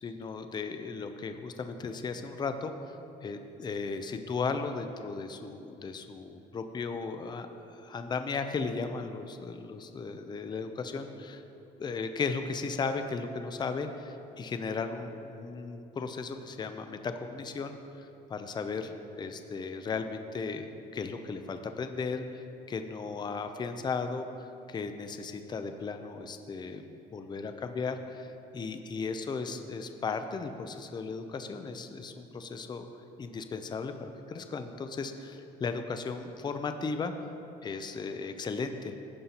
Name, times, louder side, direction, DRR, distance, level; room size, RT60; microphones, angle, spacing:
voice 1, 0.0-2.9 3.2-11.4 11.8-26.8 27.1-32.9 33.2-37.1 37.6-38.9, left 4 dB, 25° left, 8 dB, 0.5 m, -36 dB
15.0 x 5.5 x 2.9 m, 2.7 s
cardioid pair, 110°, 17 cm